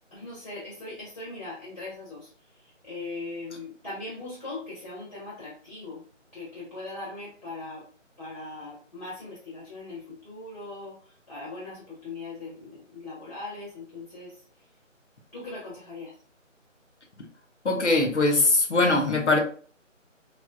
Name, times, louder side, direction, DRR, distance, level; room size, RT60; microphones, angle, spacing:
voice 1, 0.1-2.3 2.6-6.0 6.3-7.9 8.2-14.4 15.3-16.1, left 2 dB, 35° left, -7 dB, 1.2 m, -40 dB
voice 2, 17.6-19.4, left 2 dB, 60° left, 3 dB, 0.9 m, -21 dB
3.3 x 2.7 x 2.2 m, 0.43 s
figure-of-eight pair, 160°, 39 cm